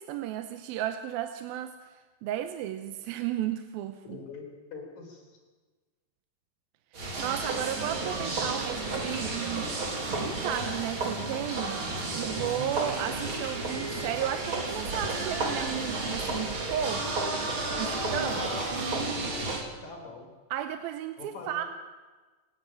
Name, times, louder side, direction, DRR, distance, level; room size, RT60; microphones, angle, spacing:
voice 1, 0.0-1.7 2.2-4.2 7.2-9.7 10.2-11.8 12.1-17.1 17.8-18.4 20.5-21.6, right 11 dB, 85° right, 7 dB, 2.7 m, -34 dB
voice 2, 4.0-5.2 18.2-19.2 19.8-20.3 21.2-21.7, left 3 dB, 50° left, 1 dB, 5.7 m, -43 dB
sound 1, 6.9-19.6, right 2 dB, 35° right, 3.8 m, -32 dB
29.0 x 11.0 x 9.1 m, 1.3 s
omnidirectional pair, 4.1 m